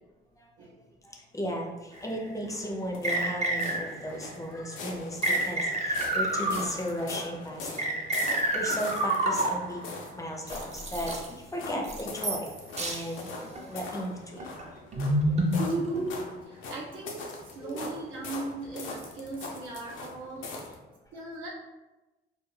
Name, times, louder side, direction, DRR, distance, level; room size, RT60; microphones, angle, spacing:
voice 1, 0.4-0.7 1.0-9.8 10.1-12.5 12.8-14.6 15.1-15.8 17.6-17.9, equal, 15° left, 0 dB, 0.5 m, -36 dB
sound 1, 1.9-20.8, left 3 dB, 85° left, 0.5 m, -42 dB
sound 2, 2.0-2.1 3.0-4.1 5.2-7.0 7.8-9.8 10.5-11.3 11.8-12.5 12.8-13.0 13.5-13.8 14.4-16.3, right 1 dB, 35° right, 0.5 m, -28 dB
voice 2, 15.7-20.5 21.1-21.5, right 3 dB, 80° right, -4 dB, 0.6 m, -40 dB
2.3 x 2.1 x 3.1 m, 1.1 s
cardioid pair, 90°, 20 cm